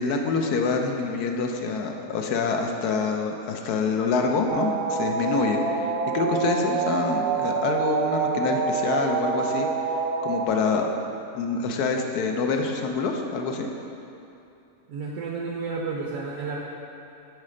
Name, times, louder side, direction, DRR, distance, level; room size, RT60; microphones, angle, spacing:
voice 1, 0.0-9.7 9.9-10.9 11.3-13.7, left 4 dB, 90° left, 3 dB, 1.2 m, -26 dB
sound 1, 4.5-10.5, right 5 dB, 85° right, 1.1 m, -26 dB
voice 2, 14.9-16.6, right 4 dB, 65° right, -1 dB, 1.1 m, -31 dB
9.6 x 4.2 x 5.0 m, 2.7 s
omnidirectional pair, 1.6 m